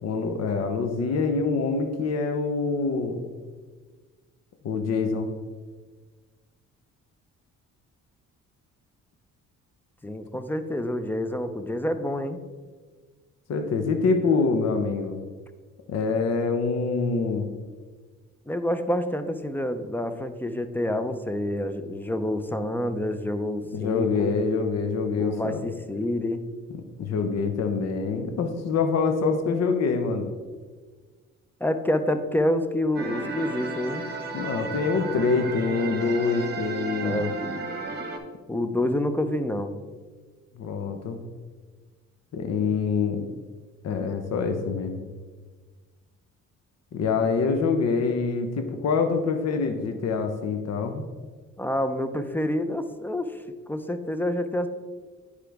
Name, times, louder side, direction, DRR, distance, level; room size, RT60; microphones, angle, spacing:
voice 1, 0.0-3.2 4.6-5.3 13.5-15.2 15.9-17.5 23.7-25.6 27.0-30.3 34.3-37.3 40.6-41.2 42.3-43.2 43.8-45.0 46.9-51.0, left 4 dB, 60° left, 6 dB, 0.8 m, -25 dB
voice 2, 10.0-12.4 18.5-24.3 25.2-26.5 31.6-34.0 37.0-37.4 38.5-39.7 51.6-53.4 53.7-54.7, left 1 dB, 5° left, 9 dB, 0.5 m, -28 dB
sound 1, 33.0-38.2, right 3 dB, 35° right, 1.2 m, -33 dB
10.0 x 4.9 x 3.4 m, 1.4 s
cardioid pair, 90°, 30 cm